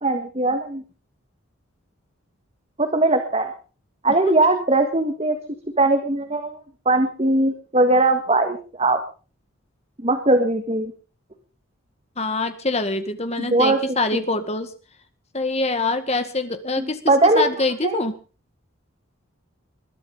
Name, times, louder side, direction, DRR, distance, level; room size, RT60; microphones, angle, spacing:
voice 1, 0.0-0.8 2.8-3.5 4.0-5.4 5.8-6.6 6.8-9.0 10.0-10.9 13.4-13.8 16.8-17.5 17.8-18.0, right 2 dB, 30° right, 7 dB, 1.7 m, -20 dB
voice 2, 12.2-14.7 15.3-17.0 17.3-18.1, left 2 dB, 30° left, 9 dB, 1.9 m, -24 dB
21.5 x 11.5 x 5.3 m, 0.38 s
head